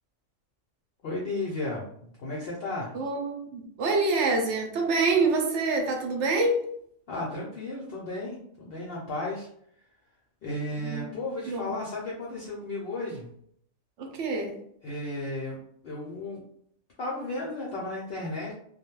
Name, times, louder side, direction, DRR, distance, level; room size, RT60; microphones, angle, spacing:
voice 1, 1.0-3.0 7.1-9.5 10.4-13.3 14.8-15.6 15.8-16.4 17.0-18.5, left 2 dB, 60° left, -4 dB, 0.6 m, -34 dB
voice 2, 2.9-6.6 10.7-11.1 11.5-11.7 14.0-14.5, right 3 dB, 65° right, 2 dB, 0.8 m, -26 dB
2.3 x 2.1 x 3.0 m, 0.67 s
omnidirectional pair, 1.4 m